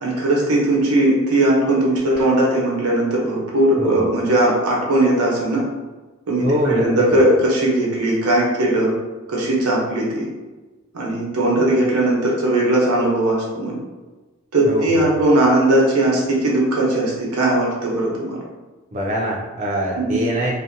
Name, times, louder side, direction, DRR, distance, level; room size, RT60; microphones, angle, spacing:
voice 1, 0.0-5.6 6.3-8.9 9.3-10.3 10.9-13.8 14.5-18.4 20.0-20.2, right 1 dB, 90° right, -3 dB, 0.7 m, -18 dB
voice 2, 3.8-4.1 6.4-6.8 7.1-7.2 14.6-15.3 18.9-20.5, equal, 35° right, -3 dB, 0.3 m, -23 dB
2.6 x 2.1 x 2.5 m, 1.2 s
head